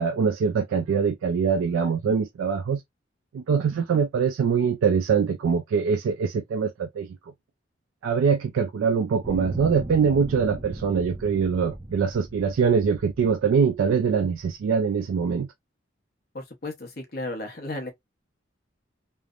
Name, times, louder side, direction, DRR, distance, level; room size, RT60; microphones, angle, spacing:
voice 1, 0.0-2.8 3.3-7.2 8.0-15.5, right 6 dB, 85° right, 0.3 m, -23 dB
sound 1, 9.2-14.5 15.2-15.3, right 1 dB, 20° right, 0.4 m, -38 dB
voice 2, 16.3-17.9, left 2 dB, 50° left, 0.8 m, -34 dB
3.2 x 2.0 x 2.4 m
head